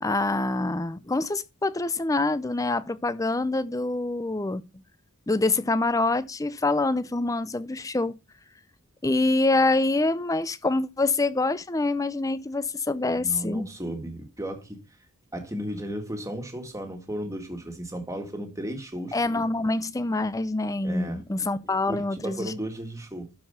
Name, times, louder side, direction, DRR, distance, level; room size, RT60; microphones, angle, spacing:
voice 1, 0.0-4.6 5.3-8.2 9.0-13.7 19.1-22.5, left 2 dB, 15° left, 0.5 m, -25 dB
voice 2, 13.1-14.8 15.3-19.5 20.8-21.2 21.6-23.3, right 1 dB, 15° right, 1.7 m, -35 dB
12.0 x 4.7 x 5.5 m
head